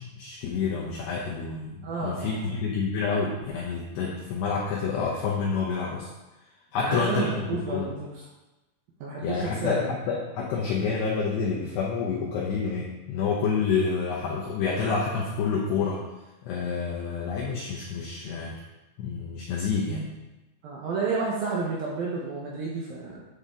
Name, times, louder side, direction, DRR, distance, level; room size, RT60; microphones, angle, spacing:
voice 1, 0.0-6.1 6.7-7.9 9.2-16.0 16.4-18.6 19.0-20.1, left 5 dB, 75° left, -4 dB, 2.6 m, -28 dB
voice 2, 1.8-2.4 6.7-8.1 9.0-10.0 20.6-23.2, right 4 dB, 80° right, -4 dB, 2.1 m, -30 dB
9.9 x 6.9 x 3.7 m, 1.1 s
omnidirectional pair, 5.9 m